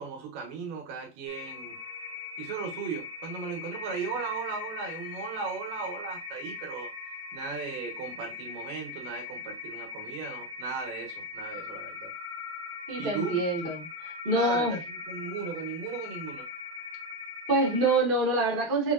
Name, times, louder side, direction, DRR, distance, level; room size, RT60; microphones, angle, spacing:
voice 1, 0.0-1.8 2.4-6.9 7.3-12.1 13.0-13.4 14.3-16.5, right 5 dB, 90° right, 3.0 m, -37 dB
sound 1, 1.3-18.0, left 5 dB, 90° left, 2.4 m, -40 dB
voice 2, 12.9-13.9 14.2-14.8 17.5-18.9, right 2 dB, 40° right, 0.7 m, -25 dB
6.4 x 2.8 x 2.5 m
omnidirectional pair, 3.8 m